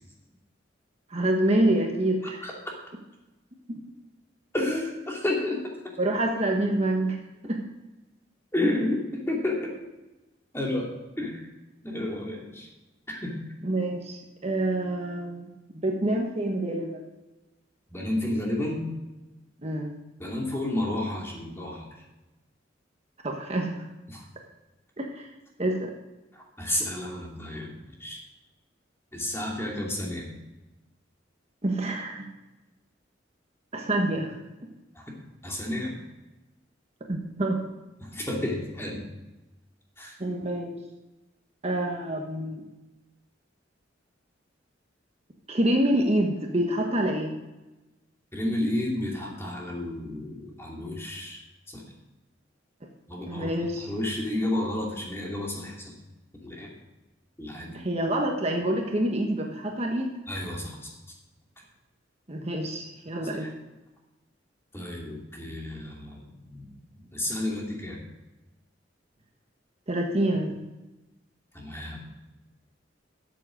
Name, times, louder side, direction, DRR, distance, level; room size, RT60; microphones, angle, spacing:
voice 1, 1.1-2.4 3.7-3.8 6.0-7.2 7.4-7.6 13.6-17.0 19.6-19.9 23.2-23.8 25.0-25.3 25.6-25.9 31.6-32.3 33.7-34.3 37.1-37.6 40.2-40.8 41.6-42.6 45.5-47.3 53.3-53.9 57.7-60.1 62.3-63.5 69.9-70.5, right 1 dB, 35° right, 1 dB, 1.2 m, -27 dB
voice 2, 4.5-5.7 8.5-9.7 10.5-10.9 11.2-11.5 11.8-12.7 13.1-13.4 17.9-18.9 20.2-21.9 24.1-24.2 26.3-28.2 29.1-30.3 34.9-35.1 35.4-35.9 38.0-39.1 40.0-40.2 48.3-51.4 51.7-51.9 53.1-56.0 56.4-56.7 57.4-57.8 60.3-60.9 63.4-63.5 64.7-68.0 71.5-72.0, left 1 dB, 15° left, -2 dB, 2.6 m, -31 dB
13.0 x 7.5 x 5.1 m, 1.0 s
head